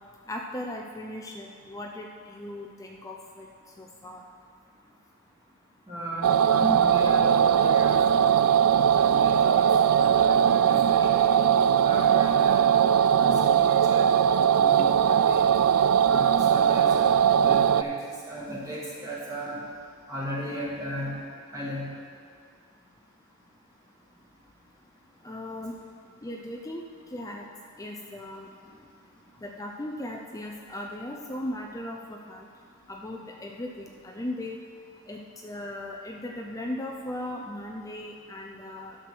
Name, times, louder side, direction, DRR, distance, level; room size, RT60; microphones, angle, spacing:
voice 1, 0.3-3.5 3.8-4.2 25.2-25.8 26.2-26.8 27.1-27.4 27.8-28.5 29.4-32.5 32.9-34.6 35.1-39.0, left 1 dB, 15° left, 0 dB, 0.5 m, -37 dB
voice 2, 5.9-8.4 8.9-11.2 11.8-12.7 13.2-14.1 14.5-15.4 16.0-17.9 18.3-19.6 20.1-21.1 21.5-21.9, right 1 dB, 15° right, -6 dB, 1.7 m, -35 dB
sound 1, 6.2-17.8, right 8 dB, 75° right, 0.3 m, -20 dB
11.5 x 6.0 x 6.0 m, 2.1 s
head